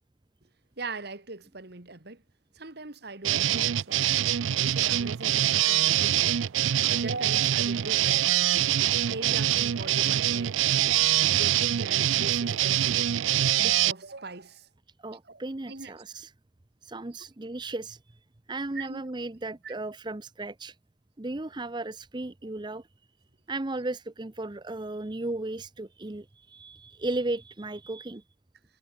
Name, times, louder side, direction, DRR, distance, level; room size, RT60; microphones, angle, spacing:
voice 1, 0.8-2.2 2.6-4.2 4.6-6.4 6.9-8.3 9.1-10.6 11.3-13.1 13.6-14.7 15.3-15.4 15.7-15.9 18.8-19.0 19.6-19.7 22.4-22.5, right 3 dB, 55° right, 2.0 m, -40 dB
sound 1, 3.2-13.9, right 12 dB, 90° right, 0.5 m, -24 dB
voice 2, 15.0-16.3 16.8-18.2 18.5-20.8 21.2-22.9 23.5-28.2, right 2 dB, 25° right, 0.7 m, -35 dB
head